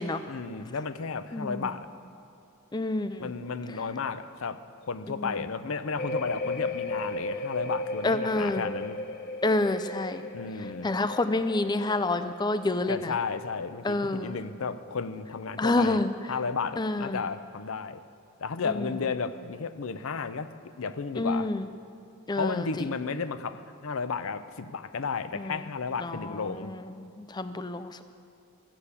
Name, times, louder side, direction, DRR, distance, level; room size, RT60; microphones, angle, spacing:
voice 1, 0.3-1.9 3.2-9.0 10.3-10.9 12.9-16.0 16.3-18.0 18.4-20.5 20.8-21.5 22.4-26.7, left 5 dB, 75° left, 12 dB, 0.6 m, -33 dB
voice 2, 1.3-1.7 2.7-3.3 5.2-5.3 8.0-8.6 9.4-10.3 10.8-13.2 13.8-14.4 15.6-16.1 16.8-17.2 18.6-18.9 21.2-21.6 22.3-22.7 25.3-25.6 26.0-28.0, left 2 dB, 20° left, 11 dB, 0.4 m, -28 dB
sound 1, 6.0-14.6 14.9-15.4, left 2 dB, 45° left, 0.9 m, -36 dB
13.5 x 7.0 x 8.2 m, 2.4 s
head